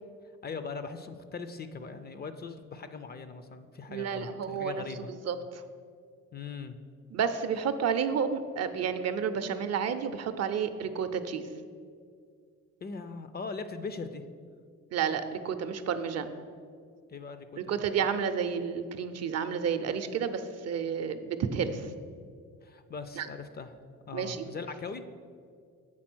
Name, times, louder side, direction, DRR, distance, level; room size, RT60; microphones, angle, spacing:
voice 1, 0.4-5.1 6.3-6.8 12.8-14.2 17.1-17.5 22.6-23.7 24.1-25.0, left 4 dB, 35° left, 10 dB, 0.4 m, -40 dB
voice 2, 3.9-5.6 7.1-11.5 14.9-16.3 17.6-21.9 23.2-23.3 24.1-24.5, right 7 dB, 55° right, 10 dB, 0.5 m, -31 dB
7.5 x 3.8 x 6.1 m, 2.2 s
cardioid pair, 90°, 30 cm